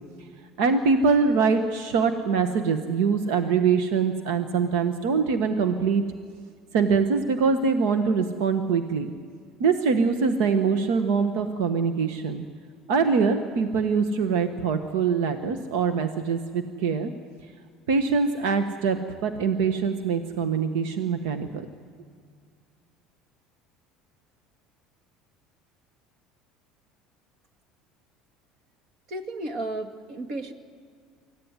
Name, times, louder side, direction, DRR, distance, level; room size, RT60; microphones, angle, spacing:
voice 1, 0.6-6.0 6.7-9.1 9.6-12.4 12.9-17.1 17.9-19.0 19.2-21.7, right 5 dB, 80° right, 7 dB, 1.4 m, -23 dB
voice 2, 29.1-30.5, right 2 dB, 55° right, 6 dB, 2.2 m, -33 dB
24.5 x 15.5 x 9.8 m, 2.1 s
supercardioid pair, 125°, 0 cm